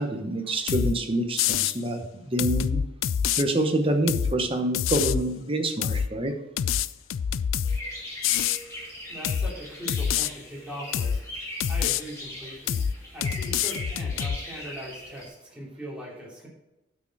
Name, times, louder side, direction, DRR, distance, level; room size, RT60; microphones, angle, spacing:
voice 1, 0.0-2.8 3.4-6.3, right 1 dB, 25° right, 5 dB, 1.0 m, -27 dB
sound 1, 0.7-0.9 1.4-1.8 2.4-3.4 4.1-4.3 4.7-5.2 5.8-6.1 6.6-7.8 8.2-8.6 9.2-9.5 9.9-10.3 10.9-11.2 11.6-12.0 12.7-12.9 13.2-14.4, left 8 dB, 70° left, 0.3 m, -26 dB
sound 2, 7.6-15.3, equal, 15° left, 2.2 m, -40 dB
voice 2, 9.1-12.8 13.1-16.5, right 1 dB, 5° right, -5 dB, 2.9 m, -40 dB
9.2 x 6.5 x 4.8 m, 0.94 s
head